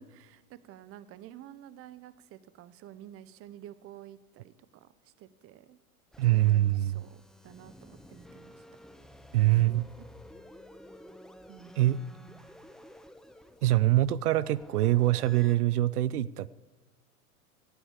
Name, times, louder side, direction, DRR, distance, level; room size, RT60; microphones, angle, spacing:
voice 1, 0.0-5.8 6.2-8.6 9.5-10.1 11.5-12.5, right 11 dB, 30° right, 15 dB, 0.8 m, -50 dB
sound 1, 6.1-15.6, left 1 dB, ahead, 0.7 m, -52 dB
voice 2, 6.2-7.0 9.3-9.9 11.8-12.0 13.6-16.5, right 15 dB, 80° right, 19 dB, 0.6 m, -24 dB
17.5 x 8.1 x 7.2 m, 1.2 s
hypercardioid pair, 110°, 45 cm